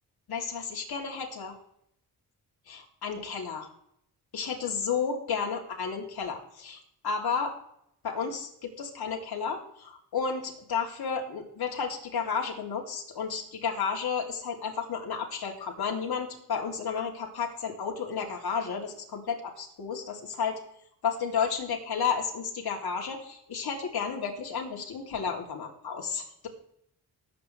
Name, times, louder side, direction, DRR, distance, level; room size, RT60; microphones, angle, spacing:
voice 1, 0.3-1.6 2.7-3.7 4.3-7.5 8.0-20.6 21.0-26.5, left 6 dB, 70° left, 1 dB, 3.2 m, -32 dB
19.5 x 8.6 x 3.4 m, 0.72 s
cardioid pair, 90°, 40 cm